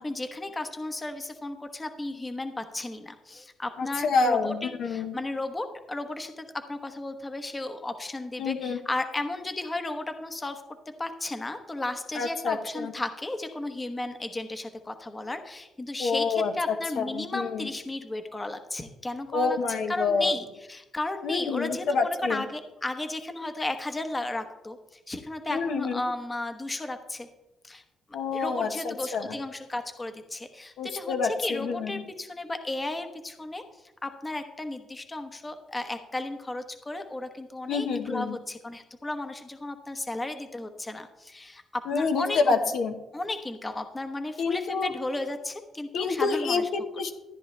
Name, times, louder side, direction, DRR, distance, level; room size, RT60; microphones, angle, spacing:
voice 1, 0.0-10.6 11.0-27.3 27.6-27.8 28.3-33.6 34.0-41.6 41.9-42.6 43.1-46.7, left 2 dB, 20° left, 7 dB, 1.0 m, -34 dB
voice 2, 3.8-5.1 8.4-8.8 12.1-12.9 16.0-17.7 19.3-20.3 21.2-22.4 25.5-26.0 28.1-29.4 30.8-31.9 37.7-38.4 41.9-42.9 44.4-44.9 45.9-47.1, left 4 dB, 75° left, 4 dB, 1.3 m, -27 dB
13.5 x 9.9 x 3.3 m, 1.0 s
cardioid pair, 90°, 0 cm